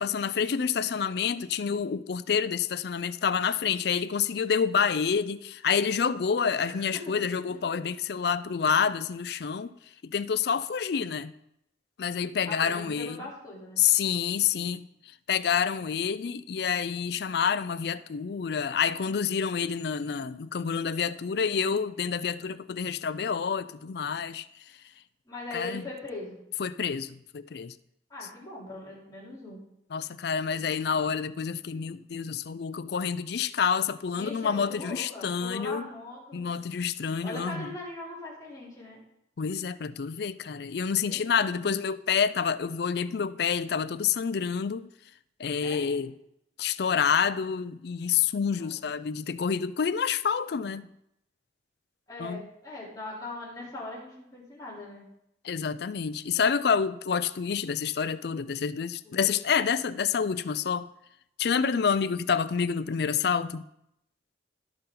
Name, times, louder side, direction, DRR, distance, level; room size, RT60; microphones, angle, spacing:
voice 1, 0.0-9.7 10.0-11.3 12.0-13.2 13.8-14.9 15.3-24.4 25.5-25.8 26.6-27.7 29.9-35.9 36.3-37.7 39.4-44.9 45.4-46.1 46.6-50.9 52.2-52.4 55.4-60.9 61.4-63.6, left 6 dB, 55° left, 0.4 m, -28 dB
voice 2, 6.6-7.1 7.5-7.6 12.5-13.8 21.4-21.8 25.3-26.4 28.1-29.6 34.2-36.5 37.2-39.0 40.9-41.7 45.6-46.0 48.5-48.8 52.1-55.0 59.2-59.4, left 2 dB, 20° left, 3.5 m, -41 dB
17.0 x 5.7 x 3.8 m
head